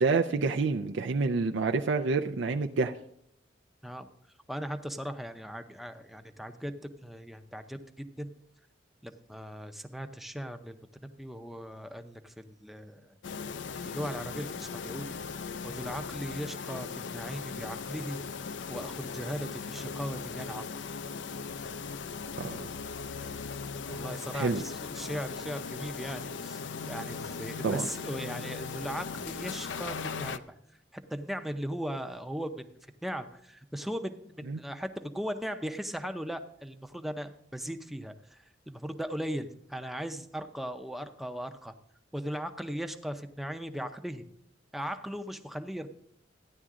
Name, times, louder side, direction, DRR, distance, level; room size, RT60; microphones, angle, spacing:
voice 1, 0.0-2.9 22.4-22.7 24.3-24.6 27.6-27.9 34.5-34.6, right 4 dB, 75° right, 5 dB, 0.5 m, -28 dB
voice 2, 4.5-6.7 7.0-8.3 9.0-13.2 13.9-15.1 15.6-18.2 18.7-20.8 23.9-30.4 30.9-32.7 33.0-38.4 38.7-41.7 42.1-44.2 44.7-45.9, equal, ahead, 7 dB, 0.6 m, -38 dB
sound 1, 13.2-30.4, left 5 dB, 75° left, 0.5 m, -38 dB
14.0 x 10.0 x 3.7 m, 0.72 s
head